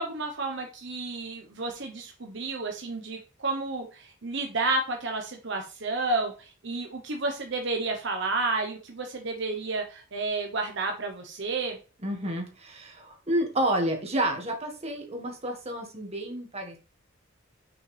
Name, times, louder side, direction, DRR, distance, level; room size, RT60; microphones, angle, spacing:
voice 1, 0.0-11.8, right 3 dB, 60° right, 3 dB, 1.0 m, -31 dB
voice 2, 12.0-16.8, right 1 dB, 30° right, 2 dB, 1.7 m, -30 dB
6.4 x 5.6 x 3.3 m, 0.34 s
head